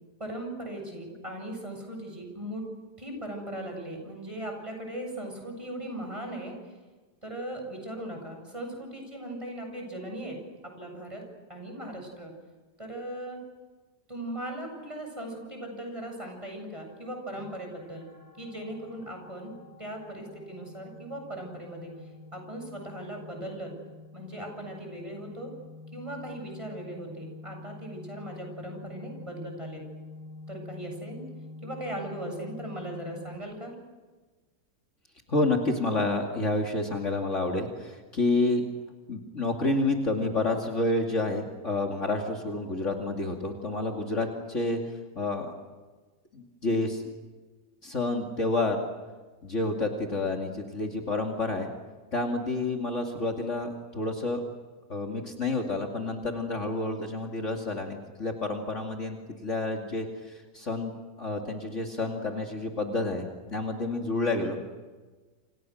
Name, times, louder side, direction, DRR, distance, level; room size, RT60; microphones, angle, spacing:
voice 1, 0.2-2.6 3.0-6.5 7.2-10.4 10.8-11.2 11.5-12.3 12.8-13.4 14.1-18.1 18.4-21.9 22.3-23.7 24.1-25.5 25.9-29.8 30.5-31.2 31.6-33.7, right 1 dB, 20° right, 2 dB, 8.1 m, -38 dB
sound 1, 17.4-33.4, left 2 dB, 35° right, 4.0 m, -47 dB
voice 2, 35.3-38.7 39.1-44.8 45.2-45.5 46.3-47.0 47.8-48.8 49.4-51.7 52.1-54.4 54.9-59.2 59.4-60.9 61.2-64.8, left 2 dB, 45° left, 1 dB, 2.8 m, -29 dB
29.0 x 28.5 x 6.5 m, 1.3 s
omnidirectional pair, 1.7 m